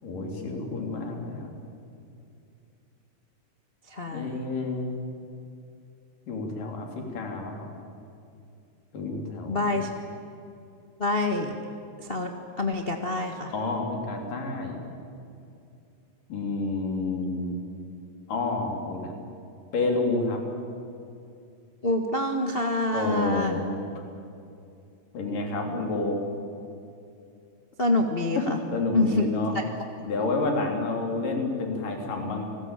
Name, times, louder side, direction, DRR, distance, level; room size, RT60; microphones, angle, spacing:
voice 1, 0.0-1.5 4.1-4.9 6.3-7.7 8.9-9.7 13.5-14.8 16.3-17.6 18.3-19.1 19.7-20.4 22.9-23.8 25.1-26.2 28.4-29.6 30.0-32.4, left 3 dB, 90° left, 2 dB, 5.0 m, -29 dB
voice 2, 3.9-4.3 9.5-10.0 11.0-11.5 12.0-12.3 12.6-13.5 21.8-23.7 27.8-28.6 28.9-29.3, left 2 dB, 30° left, 3 dB, 1.0 m, -26 dB
29.5 x 20.5 x 9.0 m, 2.6 s
omnidirectional pair, 3.7 m